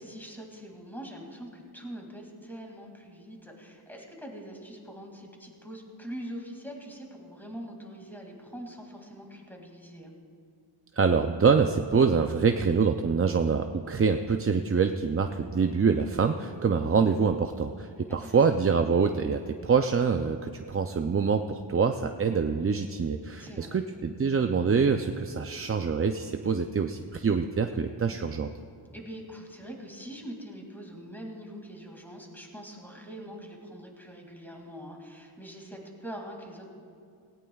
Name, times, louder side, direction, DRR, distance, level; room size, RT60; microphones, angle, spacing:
voice 1, 0.0-10.1 18.1-18.6 23.4-23.9 28.9-36.7, equal, 5° left, 0 dB, 2.3 m, -43 dB
voice 2, 11.0-28.5, right 5 dB, 30° right, 6 dB, 0.4 m, -25 dB
18.0 x 17.5 x 2.3 m, 2.4 s
wide cardioid pair, 105°, 46 cm